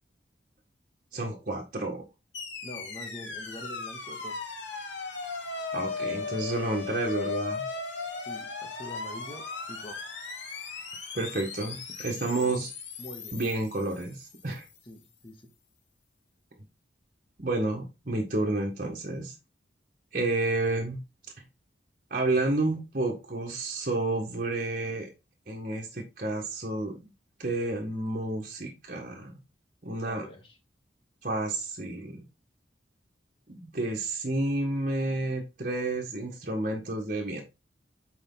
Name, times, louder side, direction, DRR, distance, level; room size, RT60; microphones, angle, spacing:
voice 1, 1.1-2.1 5.7-7.6 11.1-12.7 13.3-14.6 17.4-19.3 20.1-21.0 22.1-25.1 25.5-27.0 27.4-29.3 29.8-30.3 31.2-32.2 33.5-37.4, right 2 dB, 45° right, 1.7 m, -30 dB
sound 1, 2.3-14.6, left 4 dB, 80° left, 2.9 m, -37 dB
voice 2, 2.6-4.4 8.2-10.0 12.3-12.6 13.0-13.4 14.9-15.5 30.0-30.6, equal, 30° left, 1.9 m, -44 dB
8.1 x 5.2 x 3.9 m
head